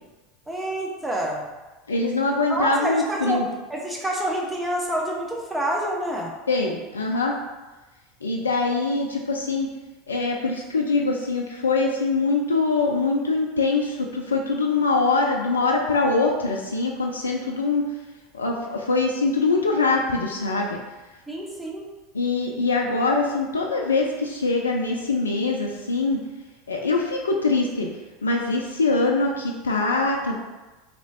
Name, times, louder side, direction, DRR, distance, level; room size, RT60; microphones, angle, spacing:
voice 1, 0.5-1.5 2.5-3.4 3.7-6.3 21.3-21.9, right 1 dB, 10° right, -2 dB, 0.7 m, -27 dB
voice 2, 1.9-3.5 6.5-7.4 8.2-9.7 10.1-17.8 18.3-20.8 22.1-26.2 26.7-27.9 28.2-30.4, left 3 dB, 85° left, 0 dB, 0.3 m, -23 dB
3.3 x 2.9 x 2.8 m, 1.2 s
hypercardioid pair, 80°, 0 cm